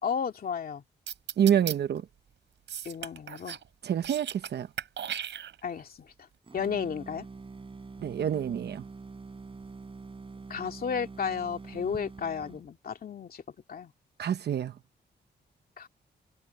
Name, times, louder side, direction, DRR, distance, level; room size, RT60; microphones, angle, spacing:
voice 1, 0.0-0.8 2.9-3.6 5.6-5.9 6.5-7.3 10.5-13.4 13.7-13.9 15.8-15.9, left 7 dB, 55° left, 2.3 m, -33 dB
sound 1, 1.1-1.8 2.7-3.7 3.9-4.5 4.8-5.8, right 9 dB, 85° right, 5.0 m, -36 dB
voice 2, 1.4-2.0 3.8-4.3 4.5-4.7 8.0-8.8 14.2-14.7, right 9 dB, 65° right, 0.9 m, -26 dB
sound 2, 6.4-12.7, right 4 dB, 30° right, 5.8 m, -45 dB
wide cardioid pair, 135°, 18 cm